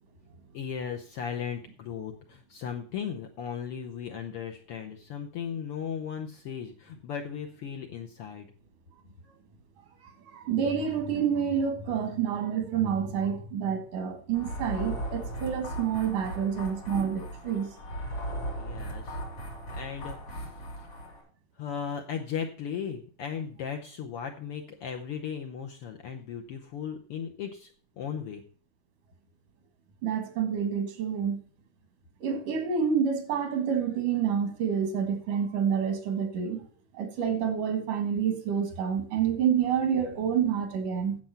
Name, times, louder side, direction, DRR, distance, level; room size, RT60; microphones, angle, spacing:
voice 1, 0.5-8.5 18.6-19.2 19.7-20.5 21.6-27.7 28.0-28.4, left 7 dB, 70° left, 1.4 m, -36 dB
voice 2, 10.0-17.7 30.0-31.4 32.2-36.6 36.9-41.2, right 7 dB, 85° right, 3.3 m, -28 dB
sound 1, 14.3-21.2, right 1 dB, 55° left, 4.7 m, -37 dB
9.6 x 7.7 x 5.7 m
omnidirectional pair, 3.5 m